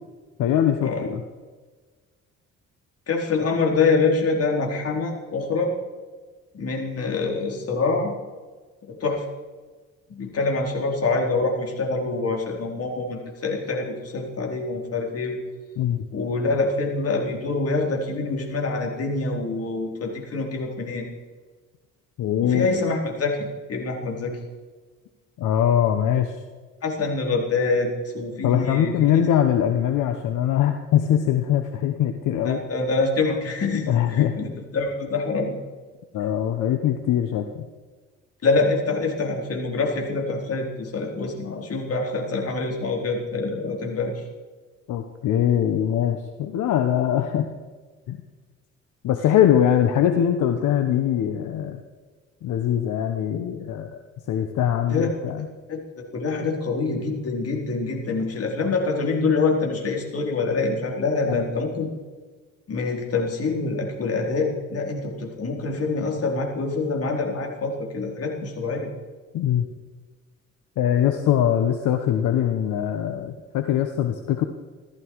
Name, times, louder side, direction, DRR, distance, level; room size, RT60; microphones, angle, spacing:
voice 1, 0.4-1.2 15.8-16.1 22.2-22.7 25.4-26.4 28.4-32.6 33.9-34.4 36.1-37.6 44.9-47.5 48.1-48.2 49.0-51.8 52.4-54.0 54.3-55.5 61.3-61.4 69.3-69.7 70.8-74.4, left 10 dB, 80° left, 7 dB, 1.1 m, -22 dB
voice 2, 3.1-5.7 6.5-8.1 8.9-9.2 10.1-15.4 16.1-21.1 22.4-24.4 26.8-29.2 32.4-35.6 38.4-44.2 54.9-55.1 55.7-61.9 62.7-68.9, left 3 dB, 50° left, 0 dB, 4.0 m, -25 dB
16.5 x 13.5 x 4.7 m, 1.4 s
cardioid pair, 90°, 30 cm